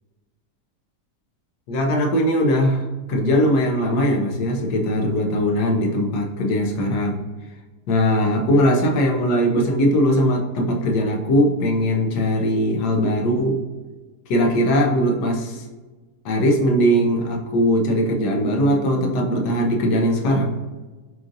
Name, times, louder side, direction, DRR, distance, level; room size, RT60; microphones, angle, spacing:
voice 1, 1.7-7.2 7.9-13.6 14.3-15.6 16.2-20.5, equal, 85° left, 2 dB, 1.3 m, -20 dB
7.4 x 2.5 x 2.6 m, 1.3 s
omnidirectional pair, 1.7 m